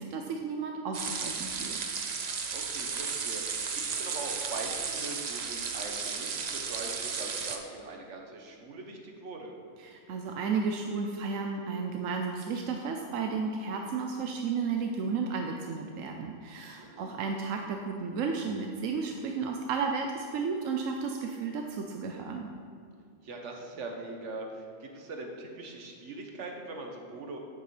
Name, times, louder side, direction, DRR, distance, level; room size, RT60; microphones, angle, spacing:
voice 1, 0.0-1.8 9.8-22.5, right 5 dB, 85° right, 3 dB, 1.0 m, -33 dB
sound 1, 0.9-7.6, right 5 dB, 45° right, 0.6 m, -34 dB
voice 2, 2.5-9.5 16.8-17.3 23.2-27.4, right 3 dB, 65° right, 2 dB, 1.4 m, -42 dB
9.3 x 8.4 x 3.3 m, 2.3 s
omnidirectional pair, 1.3 m